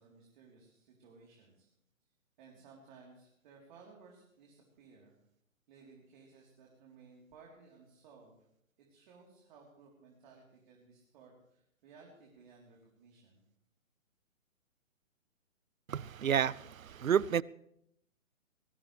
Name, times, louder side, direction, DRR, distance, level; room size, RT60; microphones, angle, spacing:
voice 1, 0.0-1.7 2.4-5.1 5.7-8.4 8.9-13.4, right 4 dB, 35° right, 3.7 m, -59 dB
voice 2, 15.9-17.4, right 8 dB, 90° right, 0.6 m, -30 dB
20.5 x 19.5 x 3.3 m
figure-of-eight pair, 140°, 40 cm